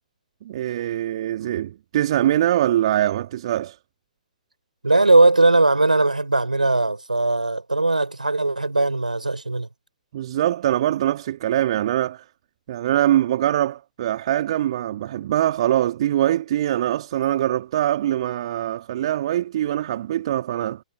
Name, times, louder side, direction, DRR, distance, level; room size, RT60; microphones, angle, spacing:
voice 1, 0.4-3.8 10.1-12.2 12.7-20.8, right 12 dB, 50° right, 2.6 m, -23 dB
voice 2, 4.8-9.7, right 2 dB, 85° right, 4.6 m, -19 dB
figure-of-eight pair, 120°, 4 cm